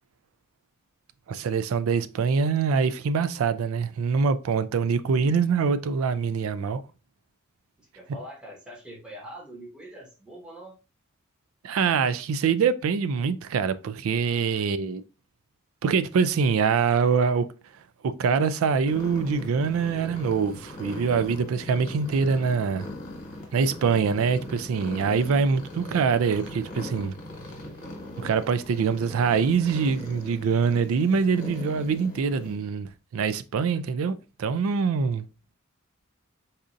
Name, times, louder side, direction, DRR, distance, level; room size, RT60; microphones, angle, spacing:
voice 1, 1.3-6.8 11.6-15.0 15.8-17.5 18.0-22.9 23.5-27.1 28.2-35.3, right 5 dB, 75° right, 0.3 m, -24 dB
voice 2, 7.8-10.7 14.2-14.7, equal, 5° right, 1.1 m, -44 dB
sound 1, 18.8-32.5, left 1 dB, 40° left, 1.3 m, -40 dB
4.1 x 2.5 x 2.4 m
head